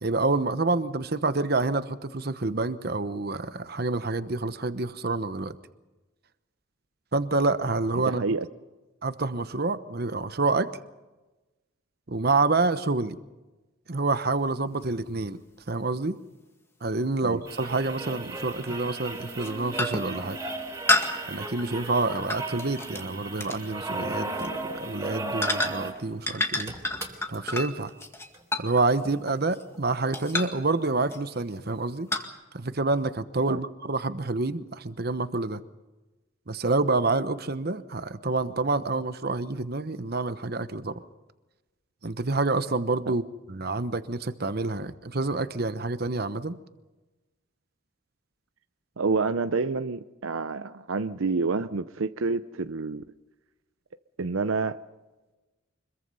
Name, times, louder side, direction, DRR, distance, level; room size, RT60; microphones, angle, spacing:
voice 1, 0.0-5.6 7.1-8.2 9.0-10.7 12.1-13.2 13.9-15.4 15.7-16.2 16.8-20.4 21.3-26.7 27.3-27.9 28.6-32.1 32.5-35.6 36.5-40.9 42.0-43.2 43.5-46.6, right 3 dB, 50° right, 12 dB, 1.0 m, -27 dB
voice 2, 8.0-8.5 17.2-17.4 33.5-33.6 43.1-43.2 49.0-53.0 54.2-54.8, right 4 dB, 80° right, 11 dB, 0.7 m, -28 dB
sound 1, 14.8-14.9 17.4-17.5 18.7-18.9 19.3-19.5 19.8-20.2 20.9-23.0 23.4-23.6 24.3-24.5 25.4-26.0 26.3-29.8 30.1-30.6 31.1-31.4 32.1-32.3, left 2 dB, 10° left, 1.9 m, -30 dB
sound 2, 17.5-26.0 26.3-26.4 26.6-27.4 28.3-28.4, right 2 dB, 15° right, 3.7 m, -35 dB
25.5 x 22.0 x 5.6 m, 1.1 s
head